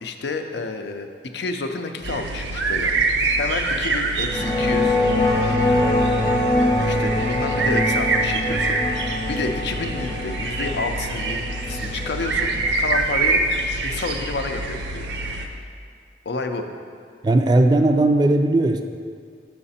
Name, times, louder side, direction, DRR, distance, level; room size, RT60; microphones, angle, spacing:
voice 1, 0.0-1.1 1.3-2.9 3.4-5.0 6.8-8.8 9.3-13.4 13.8-15.4 16.3-16.6, left 3 dB, 80° left, 6 dB, 0.5 m, -29 dB
sound 1, 2.0-15.5, right 2 dB, 85° right, 0.6 m, -25 dB
sound 2, 4.2-12.9, left 1 dB, 25° left, 0.9 m, -23 dB
voice 2, 17.2-18.8, right 2 dB, 25° right, 6 dB, 0.3 m, -17 dB
7.5 x 5.8 x 4.2 m, 2.1 s
head